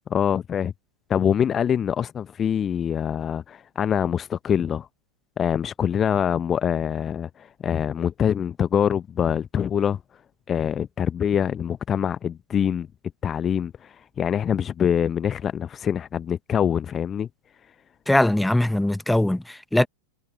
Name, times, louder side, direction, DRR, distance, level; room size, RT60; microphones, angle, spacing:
voice 1, 0.1-0.7 1.1-4.9 5.4-10.0 10.5-12.9 13.2-17.3 17.7-17.8, left 8 dB, 25° left, 0.8 m, -24 dB
voice 2, 18.1-19.9, left 1 dB, 5° left, 1.0 m, -21 dB
figure-of-eight pair, 90°, 0 cm